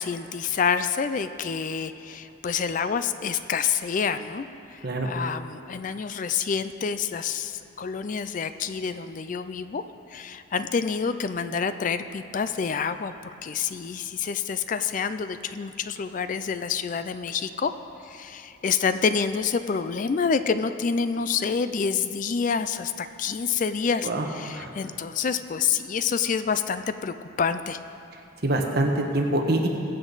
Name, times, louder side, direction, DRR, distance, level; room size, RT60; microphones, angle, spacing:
voice 1, 0.0-4.5 4.7-9.8 10.1-13.1 13.4-17.7 18.0-27.8, left 6 dB, 40° left, 11 dB, 0.3 m, -27 dB
voice 2, 28.4-29.7, right 1 dB, 50° right, 2 dB, 1.3 m, -24 dB
21.5 x 7.9 x 4.0 m, 2.7 s
head